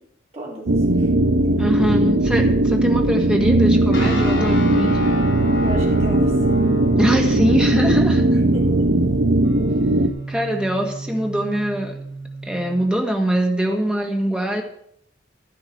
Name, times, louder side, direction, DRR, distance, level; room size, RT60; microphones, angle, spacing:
voice 1, 0.3-1.1 5.6-6.5 8.5-8.9, right 1 dB, 35° right, -3 dB, 3.8 m, -35 dB
sound 1, 0.7-10.1, right 1 dB, 65° right, 0.6 m, -18 dB
voice 2, 1.6-5.0 7.0-8.4 10.3-12.0 12.4-14.6, equal, 5° right, 2 dB, 1.5 m, -22 dB
sound 2, 3.9-12.9, right 1 dB, 80° left, 3.2 m, -30 dB
11.0 x 10.5 x 4.5 m, 0.69 s
head